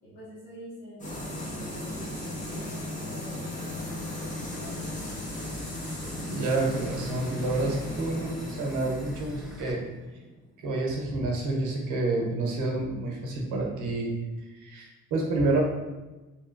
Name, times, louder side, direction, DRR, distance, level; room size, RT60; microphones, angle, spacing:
voice 1, 0.0-4.9, equal, 60° left, -11 dB, 1.3 m, -47 dB
sound 1, 1.0-10.6, left 1 dB, 25° left, 1.0 m, -36 dB
sound 2, 3.5-9.7, left 1 dB, ahead, 0.3 m, -45 dB
voice 2, 6.3-9.8 10.6-14.1 14.5-15.6, right 2 dB, 90° right, 0 dB, 0.8 m, -29 dB
3.2 x 2.9 x 2.5 m, 1.1 s
cardioid pair, 90°, 30 cm